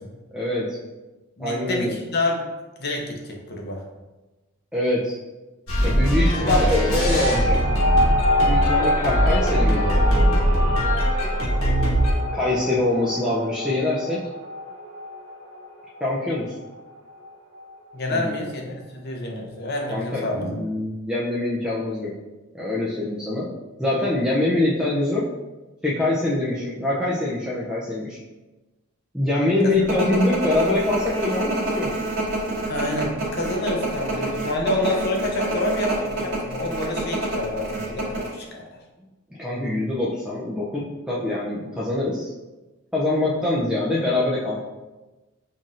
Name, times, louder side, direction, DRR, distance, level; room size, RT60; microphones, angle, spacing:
voice 1, 0.3-0.8 1.4-2.0 4.7-5.1 5.8-7.6 8.4-10.0 12.3-14.2 16.0-16.5 18.1-18.3 19.9-22.1 22.5-23.5 23.8-25.2 25.8-28.2 29.1-31.9 39.4-42.3 42.9-44.6, left 2 dB, 5° right, -7 dB, 0.4 m, -24 dB
voice 2, 1.4-2.4 2.8-3.8 6.3-7.2 17.9-20.5 29.6-29.7 32.7-38.8, left 1 dB, 50° left, 1 dB, 0.6 m, -27 dB
sound 1, 5.7-12.1, equal, 90° left, 1.2 m, -21 dB
sound 2, 6.9-17.8, left 1 dB, 70° right, 1.4 m, -27 dB
sound 3, 29.9-38.3, right 2 dB, 50° right, 1.2 m, -27 dB
5.6 x 2.5 x 2.5 m, 1.1 s
head